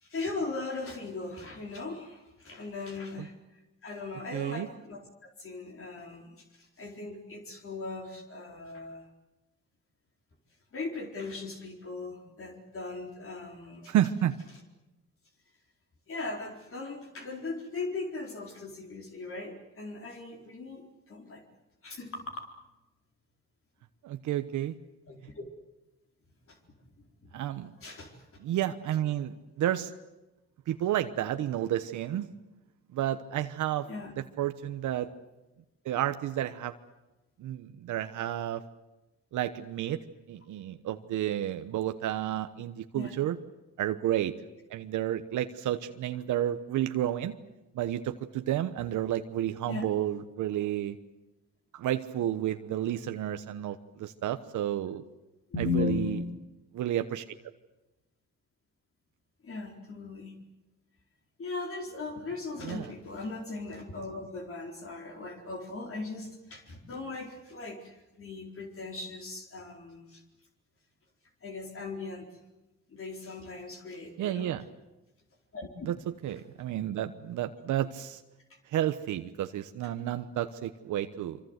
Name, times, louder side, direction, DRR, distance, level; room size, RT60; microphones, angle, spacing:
voice 1, 0.0-3.3 3.8-9.1 10.7-13.9 16.1-21.4 21.8-22.2 25.1-25.4 26.5-26.6 27.2-27.4 27.8-28.4 33.9-34.1 42.9-43.1 49.7-49.8 55.5-56.2 59.4-60.3 61.4-70.2 71.4-72.3 72.9-74.5 75.5-75.7, left 3 dB, 45° left, 2 dB, 4.3 m, -38 dB
voice 2, 4.3-4.7 13.9-14.4 24.0-24.7 27.3-27.7 28.4-29.9 30.7-32.3 32.9-33.9 34.2-35.1 35.8-36.7 37.4-38.6 39.3-40.0 40.3-43.4 43.8-44.3 44.7-47.4 47.7-51.0 51.7-55.0 55.6-56.2 56.7-57.4 62.6-62.9 74.2-74.6 75.8-76.0 76.2-78.2 78.7-81.4, right 12 dB, 80° right, 8 dB, 1.1 m, -31 dB
25.0 x 25.0 x 8.1 m, 1.0 s
cardioid pair, 90°, 30 cm